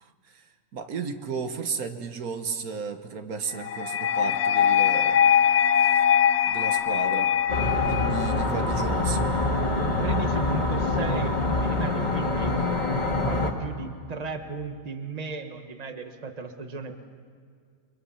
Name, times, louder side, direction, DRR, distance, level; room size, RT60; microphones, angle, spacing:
voice 1, 0.0-0.4 0.7-5.2 6.5-7.3 7.8-9.3, right 5 dB, 80° right, 6 dB, 1.7 m, -34 dB
sound 1, 3.6-8.6, left 9 dB, 85° left, 1.3 m, -22 dB
sound 2, 7.5-13.5, left 2 dB, 30° left, 2.1 m, -25 dB
voice 2, 9.8-12.5 13.3-17.0, right 4 dB, 30° right, 6 dB, 1.3 m, -35 dB
29.0 x 23.0 x 5.7 m, 2.1 s
omnidirectional pair, 1.5 m